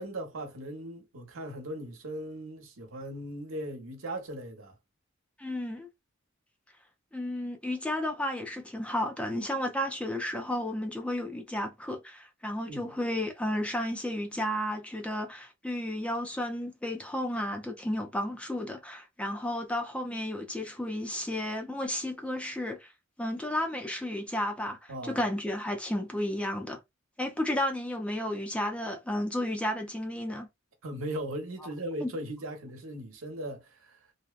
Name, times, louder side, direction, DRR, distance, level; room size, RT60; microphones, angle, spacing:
voice 1, 0.0-4.7 12.7-13.0 24.9-25.2 30.8-34.0, right 1 dB, 85° right, 0.9 m, -38 dB
voice 2, 5.4-5.9 7.1-22.9 23.2-26.8 27.2-30.5 32.0-32.1, left 1 dB, 5° left, 0.5 m, -32 dB
2.7 x 2.1 x 2.3 m
head